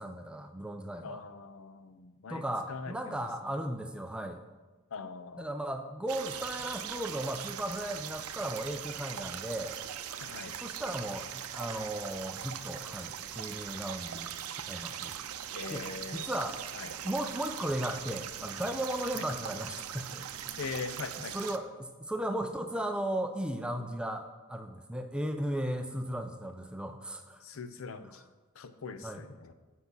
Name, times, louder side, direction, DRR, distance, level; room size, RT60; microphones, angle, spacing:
voice 1, 0.0-1.2 2.3-4.4 5.4-9.8 10.6-15.2 15.7-15.9 16.1-16.6 17.0-20.2 21.3-27.4 29.0-29.2, right 1 dB, 5° right, 6 dB, 0.5 m, -36 dB
voice 2, 1.0-3.5 4.9-5.6 10.2-10.6 15.5-16.3 16.7-17.0 19.1-19.3 20.6-21.5 27.4-28.2 28.5-29.5, left 4 dB, 65° left, 10 dB, 0.6 m, -42 dB
sound 1, 6.1-21.6, right 9 dB, 80° right, 0.5 m, -41 dB
8.1 x 5.6 x 6.0 m, 1.2 s
head